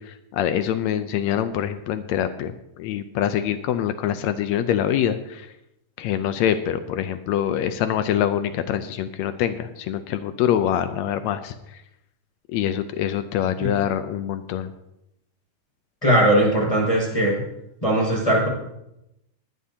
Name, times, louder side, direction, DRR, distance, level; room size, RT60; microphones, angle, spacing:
voice 1, 0.1-5.5 6.0-11.5 12.5-14.7, left 10 dB, 90° left, 10 dB, 1.6 m, -25 dB
voice 2, 16.0-17.4 17.8-18.5, right 1 dB, 10° left, -3 dB, 5.7 m, -19 dB
20.0 x 11.0 x 2.8 m, 0.85 s
omnidirectional pair, 3.9 m